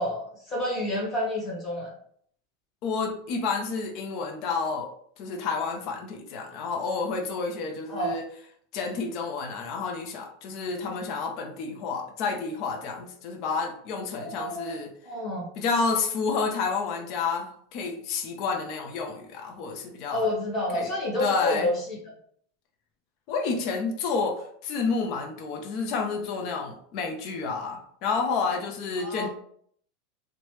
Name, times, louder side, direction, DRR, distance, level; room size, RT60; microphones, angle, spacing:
voice 1, 0.0-1.9 7.9-8.1 14.2-14.7 15.0-15.5 20.1-22.0 29.0-29.3, left 1 dB, 25° left, -4 dB, 1.3 m, -29 dB
voice 2, 2.8-4.9 5.2-8.2 8.7-14.9 15.6-20.3 20.7-20.9 21.2-21.7 23.3-29.3, left 4 dB, 45° left, 2 dB, 0.5 m, -30 dB
3.0 x 2.1 x 3.1 m, 0.62 s
supercardioid pair, 145°, 0 cm